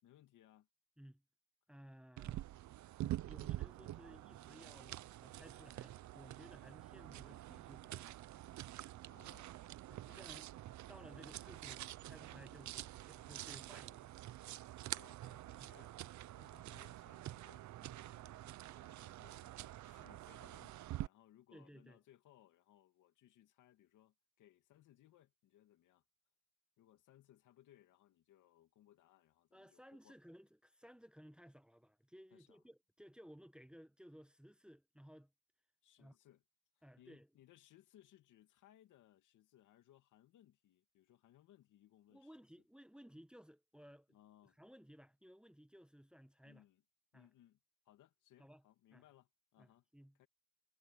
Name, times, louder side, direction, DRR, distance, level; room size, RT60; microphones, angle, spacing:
voice 1, 0.0-0.7 6.8-7.1 9.0-9.5 10.0-10.3 11.2-11.4 14.9-16.0 16.3-26.0 26.8-30.2 32.3-32.6 35.8-36.4 36.8-42.4 44.1-44.6 46.4-46.8 47.1-47.6 47.8-49.8 50.1-50.3, left 12 dB, 85° left, 2.7 m, -67 dB
voice 2, 1.7-2.5 3.3-8.2 9.9-10.5 10.9-14.1 15.6-15.7 21.5-22.0 29.5-35.3 36.0-36.2 36.8-37.3 42.1-44.1 44.6-46.6 47.1-47.3 48.4-48.6 48.9-49.0 49.6-50.3, equal, 5° right, 1.3 m, -59 dB
sound 1, 2.2-21.1, right 14 dB, 70° right, 0.7 m, -47 dB
cardioid pair, 90°, 30 cm